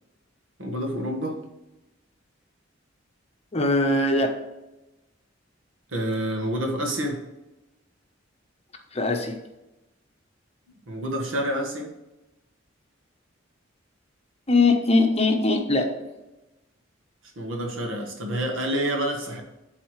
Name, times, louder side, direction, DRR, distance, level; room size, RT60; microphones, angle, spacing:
voice 1, 0.6-1.4 5.9-7.2 10.9-11.9 17.4-19.4, right 1 dB, 85° right, 2 dB, 1.5 m, -28 dB
voice 2, 3.5-4.3 8.9-9.4 14.5-15.9, left 2 dB, 30° left, 4 dB, 0.9 m, -21 dB
11.5 x 4.0 x 3.2 m, 0.99 s
head